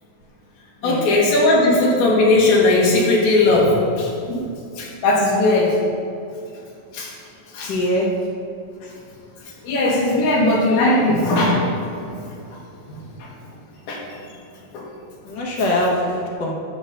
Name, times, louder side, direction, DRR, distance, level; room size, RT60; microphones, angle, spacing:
voice 1, 0.8-4.5 4.8-5.8 6.9-7.1 7.5-7.7 9.6-11.6 12.0-12.1 12.9-13.0 13.9-14.0 14.7-14.8, left 2 dB, 75° left, -3 dB, 3.4 m, -18 dB
voice 2, 7.7-8.1 15.2-16.5, left 1 dB, 55° left, -2 dB, 1.2 m, -22 dB
12.0 x 4.1 x 6.7 m, 2.5 s
omnidirectional pair, 4.2 m